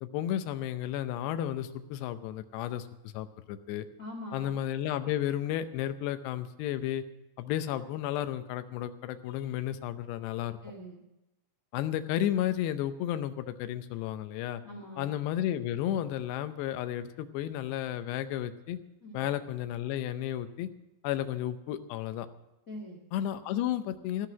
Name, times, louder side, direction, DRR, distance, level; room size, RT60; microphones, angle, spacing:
voice 1, 0.0-2.9 3.1-3.9 4.3-7.0 7.4-10.6 11.7-14.6 15.0-18.8 19.1-20.7 21.0-22.3 23.1-24.3, left 11 dB, 80° left, 10 dB, 2.8 m, -32 dB
voice 2, 4.0-4.5 10.6-11.0 14.6-15.1 19.0-19.2 22.7-23.0, left 1 dB, 60° left, 1 dB, 0.8 m, -43 dB
16.5 x 5.9 x 9.4 m, 0.93 s
omnidirectional pair, 4.9 m